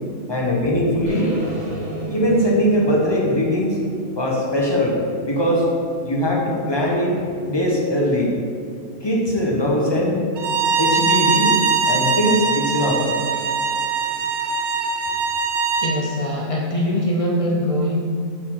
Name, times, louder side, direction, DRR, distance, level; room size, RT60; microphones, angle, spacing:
voice 1, 0.3-1.3 2.1-3.8 4.2-5.0 5.2-5.6 6.0-8.3 9.0-10.2 10.8-11.6 11.8-13.0, equal, 20° left, -3 dB, 0.9 m, -20 dB
sound 1, 1.1-5.1, right 1 dB, 35° right, 0.9 m, -33 dB
Bowed string instrument, 10.4-15.9, right 4 dB, 65° right, 0.9 m, -21 dB
voice 2, 15.8-18.0, equal, 50° left, -2 dB, 0.4 m, -22 dB
4.7 x 4.4 x 5.6 m, 2.3 s
omnidirectional pair, 1.4 m